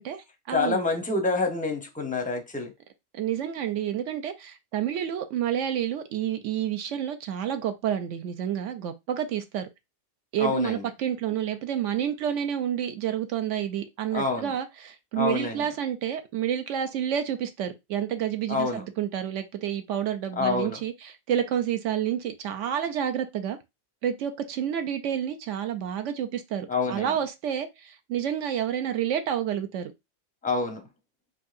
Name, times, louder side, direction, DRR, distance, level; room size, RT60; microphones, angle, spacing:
voice 1, 0.0-0.8 3.1-9.7 10.3-23.6 24.0-29.9, right 9 dB, 70° right, 0.9 m, -29 dB
voice 2, 0.5-2.7 10.4-10.9 14.1-14.5 15.1-15.6 18.5-18.8 20.4-20.8 26.7-27.1 30.4-30.9, left 3 dB, 10° left, 0.5 m, -27 dB
4.6 x 2.7 x 2.4 m
omnidirectional pair, 1.4 m